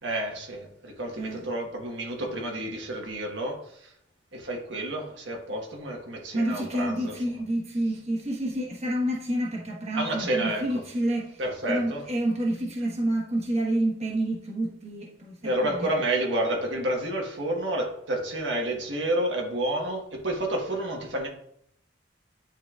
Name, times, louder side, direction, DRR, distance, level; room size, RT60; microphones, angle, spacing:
voice 1, 0.0-3.9 4.3-7.2 9.9-10.8 11.4-12.0 15.4-21.3, right 1 dB, 75° right, 0 dB, 1.3 m, -30 dB
voice 2, 1.2-1.5 6.3-11.4 11.7-15.9, right 1 dB, 35° right, -1 dB, 1.2 m, -29 dB
10.5 x 3.7 x 2.4 m, 0.71 s
head